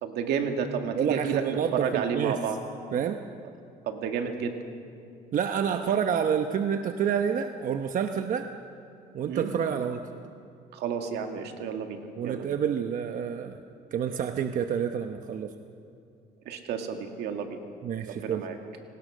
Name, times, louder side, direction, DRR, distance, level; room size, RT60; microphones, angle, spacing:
voice 1, 0.0-2.6 3.9-4.6 9.3-9.5 10.7-12.5 16.5-17.6 18.1-18.6, right 7 dB, 80° right, 4 dB, 2.1 m, -31 dB
voice 2, 1.0-2.4 2.9-3.2 5.3-8.5 9.1-10.0 12.2-13.6 13.9-15.5 17.8-18.5, right 8 dB, 50° right, 7 dB, 0.9 m, -28 dB
27.0 x 19.0 x 6.4 m, 2.5 s
cardioid pair, 110°, 17 cm